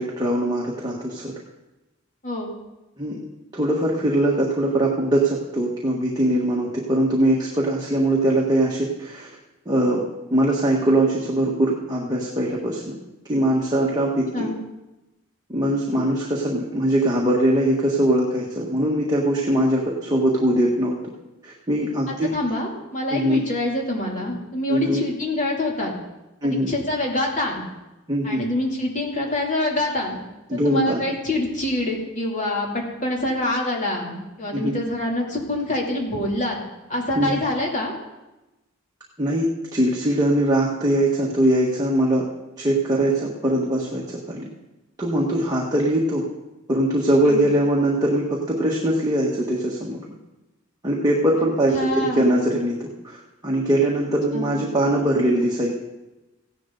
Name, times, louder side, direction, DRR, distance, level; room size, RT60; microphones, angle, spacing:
voice 1, 0.0-1.3 3.0-3.2 3.5-9.3 9.6-10.0 10.3-12.9 13.3-14.5 15.5-21.0 21.4-22.3 23.1-23.4 24.7-25.0 26.4-26.7 28.1-28.4 30.5-31.0 34.5-34.8 37.1-37.4 39.2-42.2 42.6-44.5 45.0-46.2 46.7-50.0 50.8-53.2 53.4-55.7, right 1 dB, 20° right, -3 dB, 1.6 m, -21 dB
voice 2, 22.1-25.9 26.4-27.6 28.2-30.2 30.5-32.7 33.0-36.6 36.9-37.9 47.3-47.4 51.7-52.3 54.3-54.6, left 1 dB, 40° left, -2 dB, 3.0 m, -26 dB
16.0 x 11.0 x 4.0 m, 1.0 s
head